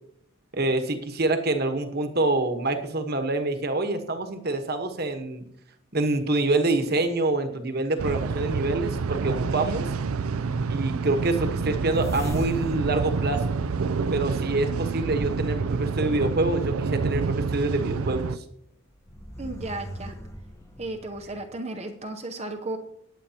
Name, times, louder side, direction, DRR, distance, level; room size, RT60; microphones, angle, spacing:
voice 1, 0.5-5.4 5.9-9.9 10.7-13.6 14.1-18.3, right 2 dB, 45° right, 7 dB, 1.2 m, -26 dB
sound 1, 8.0-18.4, right 5 dB, 80° right, 0.5 m, -28 dB
sound 2, 11.9-14.4 15.1-16.7 17.4-17.5 18.9-21.4, equal, 15° left, 1.0 m, -40 dB
voice 2, 19.4-20.1 20.8-22.8, right 2 dB, 30° right, 4 dB, 0.7 m, -34 dB
20.0 x 8.1 x 2.9 m, 0.71 s
head